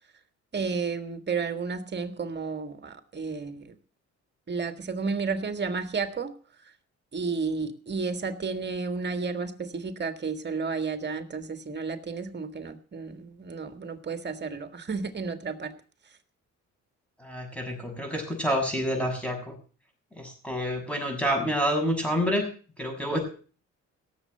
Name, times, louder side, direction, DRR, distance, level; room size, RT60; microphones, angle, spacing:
voice 1, 0.5-3.8 4.5-6.3 7.1-15.7, right 4 dB, 35° right, 8 dB, 1.8 m, -32 dB
voice 2, 17.2-19.6 20.2-22.5 22.8-23.2, equal, 5° left, 3 dB, 6.9 m, -28 dB
17.5 x 7.6 x 6.6 m, 0.40 s
cardioid pair, 90°, 30 cm